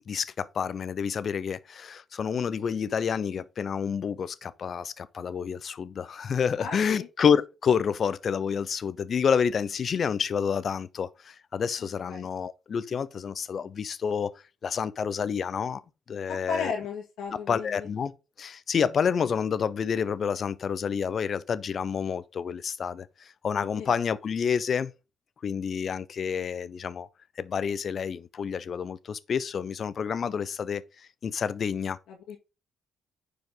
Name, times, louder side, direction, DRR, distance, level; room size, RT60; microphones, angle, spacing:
voice 1, 0.1-14.3 14.6-15.8 16.1-16.7 17.5-23.1 23.4-24.9 25.4-27.1 27.4-30.8 31.2-32.0, left 7 dB, 50° left, 0.7 m, -29 dB
voice 2, 6.6-7.1 12.1-12.3 16.3-17.9 23.8-23.9 32.1-32.4, left 5 dB, 85° left, 1.9 m, -35 dB
9.7 x 5.0 x 3.9 m
cardioid pair, 90°, 0 cm